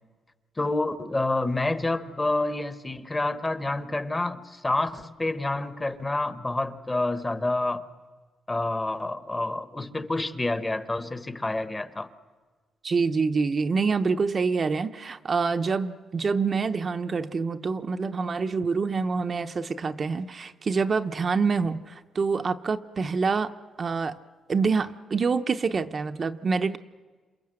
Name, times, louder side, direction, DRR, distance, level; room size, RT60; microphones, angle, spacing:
voice 1, 0.6-7.9 8.5-12.1, left 2 dB, 15° left, 1.0 m, -28 dB
voice 2, 12.8-23.5 23.8-24.1 24.5-26.8, right 4 dB, 35° right, 0.7 m, -26 dB
27.5 x 27.5 x 7.7 m
cardioid pair, 125°, 0 cm